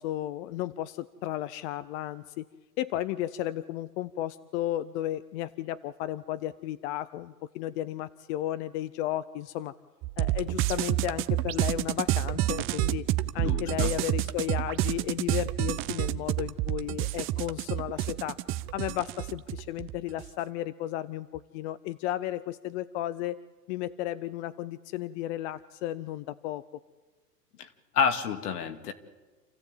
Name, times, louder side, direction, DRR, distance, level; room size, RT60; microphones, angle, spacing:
voice 1, 0.0-2.5 2.8-9.7 10.2-13.1 13.3-18.4 18.7-23.4 23.7-26.6, left 13 dB, 45° left, 14 dB, 0.8 m, -34 dB
sound 1, 10.0-20.3, right 15 dB, 25° right, 0.7 m, -29 dB
voice 2, 13.4-13.9 27.6-27.7 27.9-28.9, left 7 dB, 70° left, 7 dB, 2.4 m, -29 dB
28.0 x 14.5 x 9.1 m, 1.3 s
hypercardioid pair, 115°, 48 cm